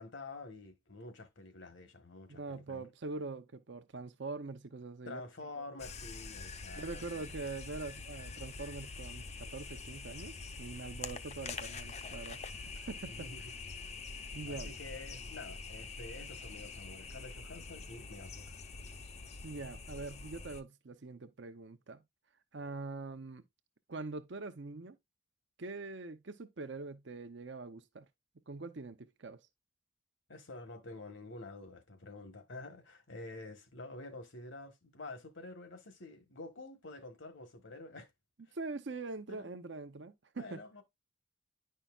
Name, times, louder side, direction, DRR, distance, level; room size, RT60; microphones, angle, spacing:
voice 1, 0.0-2.9 5.0-7.3 13.0-13.5 13.8-13.9 14.5-18.6 30.3-38.1 38.4-38.5 39.3-39.5 40.4-40.8, left 2 dB, 65° left, 1.3 m, -48 dB
voice 2, 2.3-5.2 6.8-12.4 12.7-13.3 14.3-14.7 19.4-22.0 22.5-23.4 23.9-25.0 25.6-28.1 28.5-29.4 38.5-40.6, right 3 dB, 60° right, 0.7 m, -43 dB
sound 1, 5.8-20.6, left 4 dB, 35° left, 0.6 m, -45 dB
10.0 x 5.6 x 2.4 m
head